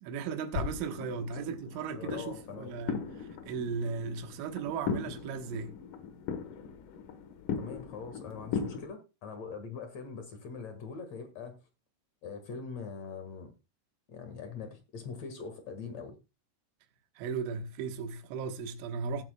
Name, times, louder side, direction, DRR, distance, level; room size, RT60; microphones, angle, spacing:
voice 1, 0.0-5.7 17.2-19.2, right 5 dB, 80° right, 3.6 m, -36 dB
sound 1, 0.5-8.9, left 6 dB, 85° left, 1.8 m, -38 dB
voice 2, 1.8-2.7 7.5-11.6 12.2-13.5 14.1-16.2, left 5 dB, 60° left, 1.8 m, -42 dB
17.5 x 8.0 x 2.2 m
omnidirectional pair, 5.5 m